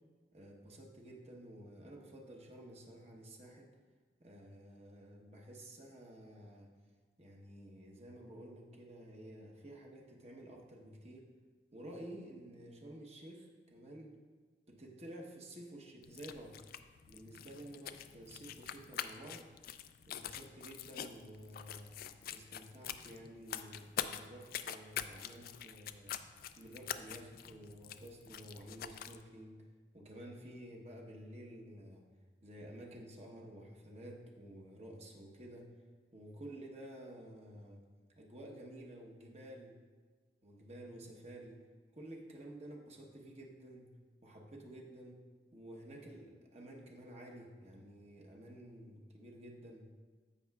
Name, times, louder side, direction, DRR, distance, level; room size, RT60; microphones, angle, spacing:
voice 1, 0.3-3.7 4.2-6.7 7.2-11.2 11.7-14.1 14.7-16.5 17.1-19.4 20.1-21.9 22.3-26.1 26.6-29.6 29.9-32.0 32.4-35.7 36.1-37.8 38.2-39.8 40.4-41.6 41.9-43.9 44.2-45.2 45.5-49.8, right 1 dB, 35° right, -1 dB, 1.1 m, -51 dB
sound 1, 16.0-29.2, left 9 dB, 50° left, 0.3 m, -45 dB
15.5 x 5.6 x 2.4 m, 1.4 s
head